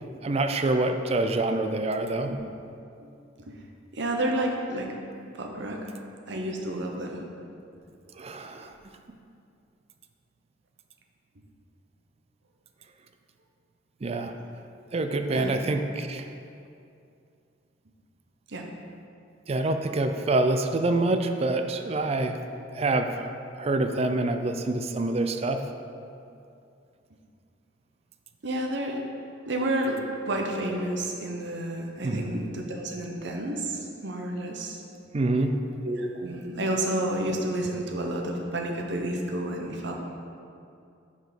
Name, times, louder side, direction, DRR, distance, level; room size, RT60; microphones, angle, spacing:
voice 1, 0.2-2.3 8.2-8.7 14.0-14.3 14.9-16.3 19.5-22.4 22.7-23.3 23.6-25.6 32.0-32.3 35.1-35.6, right 2 dB, 35° right, 7 dB, 0.4 m, -26 dB
voice 2, 3.9-4.9 5.3-5.9 6.3-7.2 15.3-15.6 18.5-18.7 28.4-29.0 29.5-34.8 35.8-39.9, right 1 dB, 65° right, 1 dB, 0.9 m, -30 dB
6.2 x 5.1 x 5.1 m, 2.5 s
head